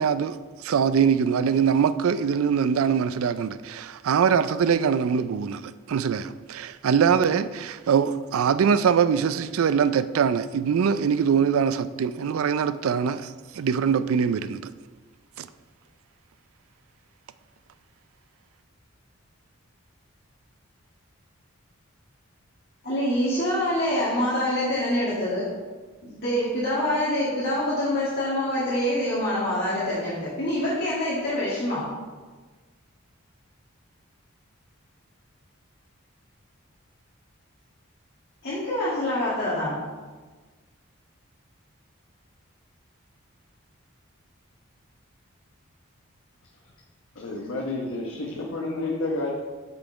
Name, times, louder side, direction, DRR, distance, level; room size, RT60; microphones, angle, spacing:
voice 1, 0.0-14.6 15.4-15.5, right 7 dB, 80° right, 0.4 m, -23 dB
voice 2, 22.8-25.5 26.0-31.9 38.4-39.9, left 1 dB, 50° left, 1.9 m, -25 dB
voice 3, 47.2-49.3, left 2 dB, 80° left, 1.1 m, -30 dB
6.5 x 6.3 x 4.4 m
head